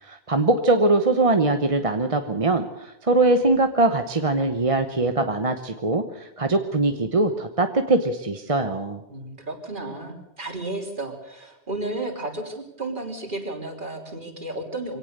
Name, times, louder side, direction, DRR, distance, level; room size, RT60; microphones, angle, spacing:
voice 1, 0.0-9.0, right 2 dB, 35° right, 7 dB, 1.1 m, -22 dB
voice 2, 9.1-15.0, right 2 dB, 50° right, 3 dB, 3.6 m, -33 dB
24.0 x 17.5 x 6.7 m, 0.84 s
omnidirectional pair, 1.1 m